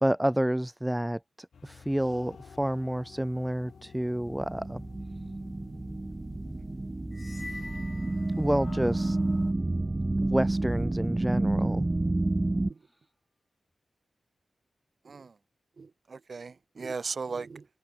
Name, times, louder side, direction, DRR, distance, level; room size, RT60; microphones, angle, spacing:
voice 1, 0.0-4.8 8.4-9.2 10.2-11.9, right 1 dB, 10° right, 0.4 m, -29 dB
Gong microphone, 1.5-9.5, left 6 dB, 70° left, 6.4 m, -51 dB
sound 1, 4.2-12.7, right 2 dB, 25° right, 0.9 m, -30 dB
sound 2, 7.1-9.0, left 3 dB, 35° left, 2.6 m, -45 dB
voice 2, 15.0-15.3 15.8-17.7, right 4 dB, 55° right, 1.2 m, -37 dB
cardioid pair, 50°, 0 cm